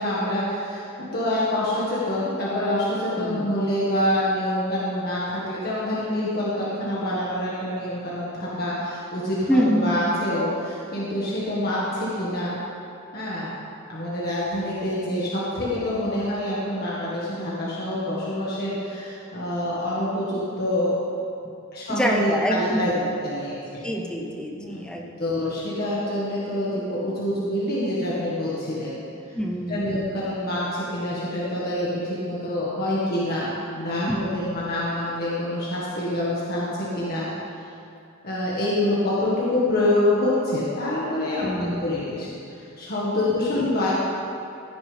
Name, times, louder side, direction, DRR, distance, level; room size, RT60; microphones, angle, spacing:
voice 1, 0.0-12.6 13.1-13.6 13.9-20.9 21.7-22.9 23.2-23.8 24.6-24.9 25.2-29.0 29.7-37.3 38.2-43.9, left 1 dB, 45° left, -7 dB, 1.8 m, -26 dB
voice 2, 3.2-3.5 9.5-10.1 21.9-23.0 23.8-25.1 25.4-25.5 29.3-30.0 34.1-34.3 41.4-41.8 43.5-43.7, equal, 5° left, 0 dB, 0.9 m, -26 dB
16.0 x 9.6 x 3.5 m, 2.6 s
head